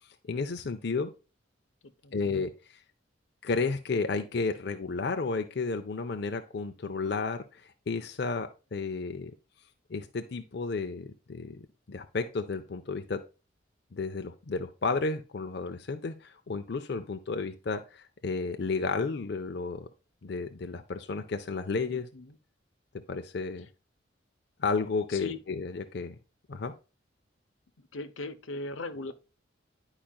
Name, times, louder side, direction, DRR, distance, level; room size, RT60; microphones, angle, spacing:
voice 1, 0.3-1.1 2.1-2.8 3.4-9.3 9.9-11.6 11.9-13.2 13.9-19.9 20.2-22.1 23.1-23.7 24.6-26.1 26.5-26.7, left 4 dB, 55° left, 0.5 m, -32 dB
voice 2, 21.9-22.4 23.6-23.7 25.1-25.4 27.8-29.1, left 2 dB, 85° left, 0.8 m, -39 dB
10.5 x 4.9 x 2.3 m
head